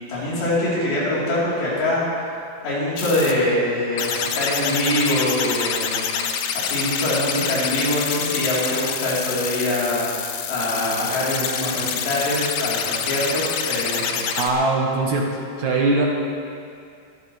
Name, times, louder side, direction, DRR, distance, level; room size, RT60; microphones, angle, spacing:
voice 1, 0.0-2.1 2.6-10.1 10.5-14.2, left 1 dB, 75° left, -8 dB, 6.3 m, -24 dB
sound 1, 3.0-3.3 4.0-14.5, left 8 dB, 90° left, 1.9 m, -27 dB
voice 2, 14.4-15.3 15.6-16.1, right 3 dB, 65° right, -1 dB, 1.9 m, -20 dB
22.5 x 12.5 x 3.4 m, 2.3 s
omnidirectional pair, 5.0 m